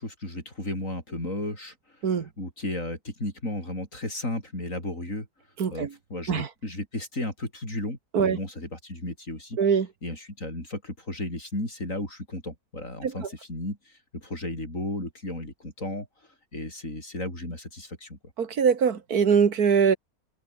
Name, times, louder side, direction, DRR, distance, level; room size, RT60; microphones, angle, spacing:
voice 1, 0.0-1.7 2.4-5.3 5.7-9.6 10.0-16.1 16.5-18.2, left 1 dB, 60° left, 8.1 m, -34 dB
voice 2, 18.4-20.0, right 6 dB, 80° right, 2.2 m, -22 dB
omnidirectional pair, 1.6 m